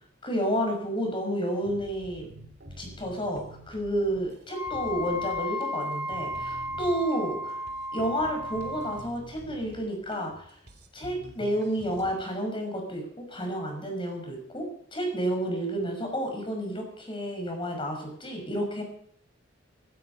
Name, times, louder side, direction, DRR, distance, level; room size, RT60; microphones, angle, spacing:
voice 1, 0.2-2.3 2.8-7.6 7.9-10.5 10.9-18.8, equal, 25° left, 2 dB, 5.8 m, -30 dB
sound 1, 1.7-12.1, equal, 55° right, 2.8 m, -48 dB
Wind instrument woodwind instrument, 4.5-9.0, left 1 dB, 25° right, 6.0 m, -34 dB
15.5 x 15.5 x 5.4 m, 0.62 s
head